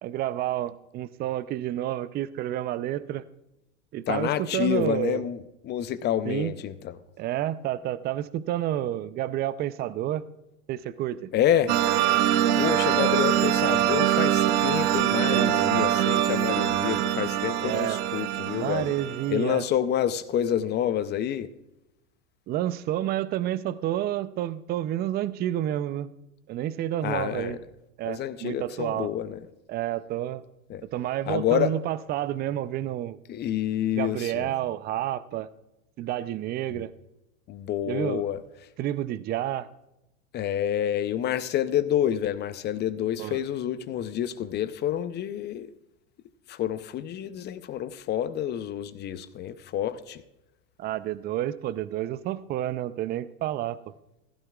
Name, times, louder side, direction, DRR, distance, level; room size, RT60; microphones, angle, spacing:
voice 1, 0.0-3.2 3.9-5.2 6.3-6.5 7.2-10.2 10.7-11.3 15.2-15.5 17.6-18.0 18.5-19.7 22.5-26.1 26.5-27.6 28.0-29.1 29.7-30.4 30.9-33.2 33.9-35.5 36.0-36.9 37.9-38.3 38.8-39.7 43.2-43.4 50.8-53.9, right 12 dB, 25° right, 16 dB, 0.5 m, -29 dB
voice 2, 4.1-5.4 5.6-7.0 11.3-11.8 12.6-18.9 19.3-21.5 27.0-27.6 28.0-29.4 30.7-30.8 31.3-31.7 33.3-34.5 36.7-36.8 37.5-38.4 40.3-45.7 46.5-50.2, left 10 dB, 30° left, 14 dB, 0.6 m, -28 dB
sound 1, 11.7-19.4, right 12 dB, 60° right, 0.9 m, -24 dB
15.0 x 13.0 x 2.4 m, 0.92 s
hypercardioid pair, 100°, 37 cm